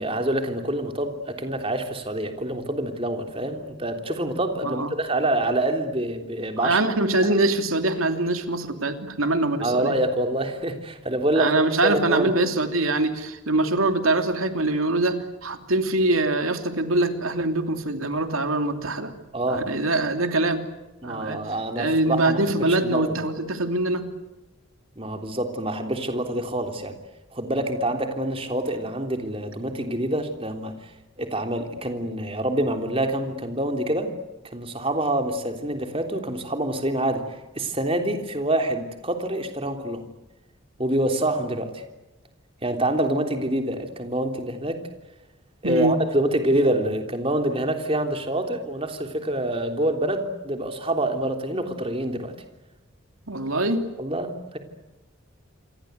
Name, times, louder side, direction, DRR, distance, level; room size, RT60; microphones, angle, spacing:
voice 1, 0.0-6.8 9.6-12.3 19.3-19.7 21.0-23.0 25.0-26.9 27.3-30.7 31.2-34.1 34.5-37.2 37.6-40.0 40.8-41.8 42.6-44.8 45.6-52.3 54.0-54.6, right 1 dB, 25° right, 5 dB, 3.4 m, -26 dB
voice 2, 6.6-10.0 11.4-19.1 19.5-20.6 21.0-21.4 21.8-24.1 45.6-46.0 53.3-53.8, right 2 dB, 85° right, 6 dB, 3.1 m, -23 dB
28.5 x 24.0 x 8.2 m, 1.0 s
head